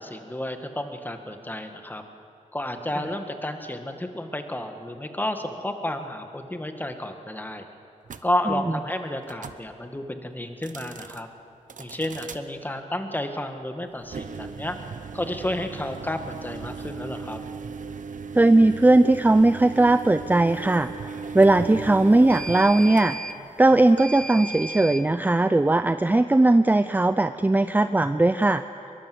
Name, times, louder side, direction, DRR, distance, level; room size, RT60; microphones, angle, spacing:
voice 1, 0.0-2.0 2.5-7.7 8.2-11.3 11.8-14.8 15.1-17.4, left 1 dB, 15° left, 6 dB, 1.8 m, -31 dB
sound 1, 8.1-8.2 9.2-9.6 10.5-11.2 11.7-12.4 14.0-25.0, right 4 dB, 75° right, 1.0 m, -37 dB
voice 2, 18.3-23.2 23.6-28.6, right 2 dB, 15° right, 11 dB, 0.5 m, -19 dB
23.0 x 22.0 x 7.9 m, 2.7 s
wide cardioid pair, 95°, 13 cm